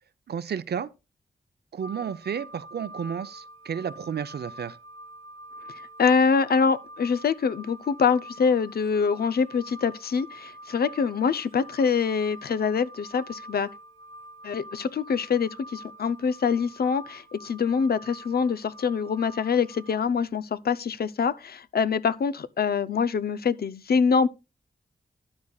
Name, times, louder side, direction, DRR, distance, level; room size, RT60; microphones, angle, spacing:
voice 1, 0.3-0.9 1.7-4.8, right 7 dB, 75° right, 0.7 m, -32 dB
sound 1, 1.8-20.0, right 1 dB, 45° left, 4.4 m, -46 dB
voice 2, 6.0-13.7 14.4-24.3, left 6 dB, 70° left, 0.6 m, -25 dB
12.5 x 9.6 x 2.4 m
cardioid pair, 70°, 17 cm